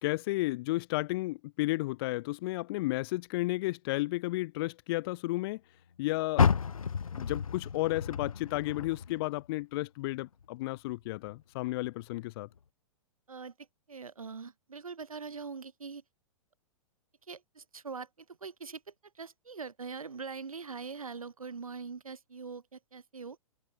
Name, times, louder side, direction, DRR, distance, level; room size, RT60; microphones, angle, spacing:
voice 1, 0.0-5.6 6.0-6.5 7.2-12.5, left 20 dB, 45° left, 0.6 m, -33 dB
Car, 6.3-9.6 10.0-11.4 11.8-11.9 12.5-12.6, left 6 dB, 90° left, 0.7 m, -31 dB
voice 2, 13.9-16.0 17.3-18.1 18.4-23.4, right 5 dB, 85° right, 4.9 m, -42 dB
hypercardioid pair, 115°, 17 cm